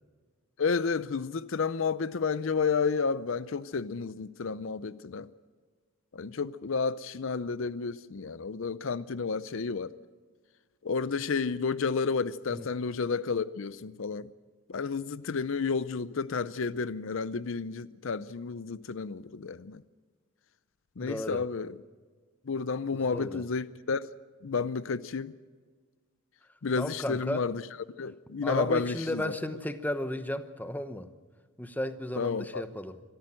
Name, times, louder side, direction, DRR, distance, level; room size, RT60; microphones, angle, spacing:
voice 1, 0.6-5.3 6.1-9.9 10.8-14.3 14.7-19.8 21.0-21.8 22.5-24.1 24.4-25.3 26.6-27.6 28.0-29.3 32.2-32.6, left 5 dB, 60° left, 0.5 m, -31 dB
voice 2, 21.0-21.4 22.9-23.4 26.8-27.5 28.4-31.1 31.6-33.0, left 1 dB, 10° left, 0.9 m, -34 dB
25.5 x 13.5 x 7.6 m
head